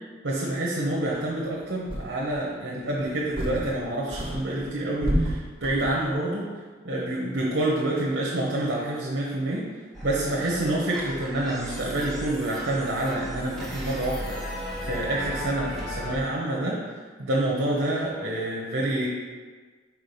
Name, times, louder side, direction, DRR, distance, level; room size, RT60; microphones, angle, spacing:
voice 1, 0.2-6.5 6.8-9.7 10.0-16.8 17.2-19.1, right 1 dB, 60° right, -4 dB, 1.0 m, -27 dB
sound 1, 1.3-1.4 1.9-2.5 3.0-3.8 4.1-6.1, equal, 30° right, 1.0 m, -30 dB
sound 2, 9.9-16.2, equal, ahead, 1.1 m, -36 dB
4.8 x 4.4 x 5.4 m, 1.5 s
head